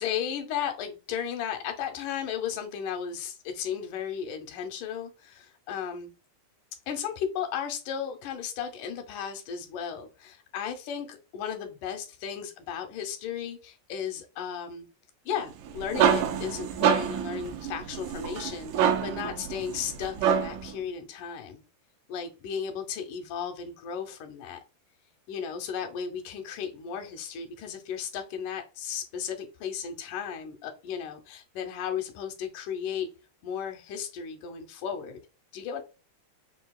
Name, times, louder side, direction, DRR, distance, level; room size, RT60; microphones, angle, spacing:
voice 1, 0.0-6.1 6.9-14.9 15.3-21.6 22.1-24.6 25.3-33.1 33.4-35.2 35.5-35.8, left 8 dB, 85° left, 5 dB, 2.3 m, -35 dB
sound 1, 15.5-20.7, right 8 dB, 80° right, 2.1 m, -27 dB
6.1 x 2.5 x 2.3 m, 0.32 s
omnidirectional pair, 3.6 m